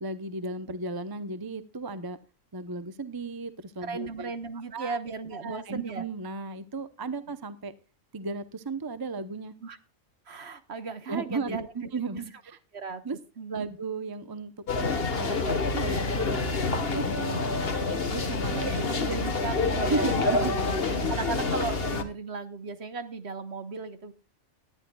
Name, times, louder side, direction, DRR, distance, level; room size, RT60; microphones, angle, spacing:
voice 1, 0.0-2.2 2.5-4.3 4.7-5.0 5.4-7.7 8.1-9.5 11.1-12.6 13.0-13.2 13.5-14.5 14.8-17.2 17.7-18.9 19.8-21.2, right 3 dB, 20° right, 12 dB, 0.7 m, -35 dB
voice 2, 3.8-6.0 9.6-9.8 10.3-11.7 12.7-13.0 13.4-13.7 16.9-17.5 18.2-20.5 21.1-24.1, right 4 dB, 55° right, 10 dB, 1.4 m, -36 dB
sound 1, 14.7-22.0, left 3 dB, 50° left, 1.5 m, -27 dB
19.0 x 11.5 x 2.3 m, 0.30 s
omnidirectional pair, 1.4 m